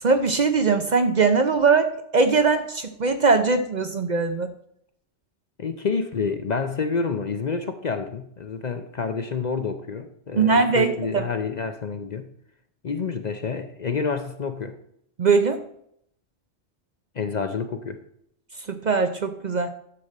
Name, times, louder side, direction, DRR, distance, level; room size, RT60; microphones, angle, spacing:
voice 1, 0.0-4.5 10.4-11.3 15.2-15.6 18.7-19.7, right 4 dB, 50° right, 7 dB, 0.6 m, -21 dB
voice 2, 5.6-12.3 12.8-14.8 17.1-18.0, left 5 dB, 45° left, 8 dB, 0.7 m, -28 dB
11.5 x 4.2 x 6.6 m, 0.72 s
omnidirectional pair, 1.2 m